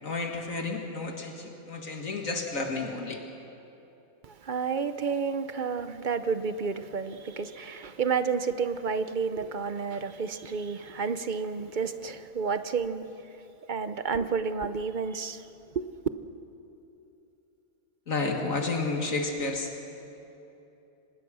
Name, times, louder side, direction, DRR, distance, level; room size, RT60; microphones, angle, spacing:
voice 1, 0.0-3.2 18.1-19.7, left 3 dB, 65° left, 2.1 m, -31 dB
voice 2, 4.2-13.1 13.7-15.5 15.7-15.9, right 5 dB, 50° right, 0.6 m, -30 dB
24.5 x 20.0 x 6.2 m
omnidirectional pair, 1.5 m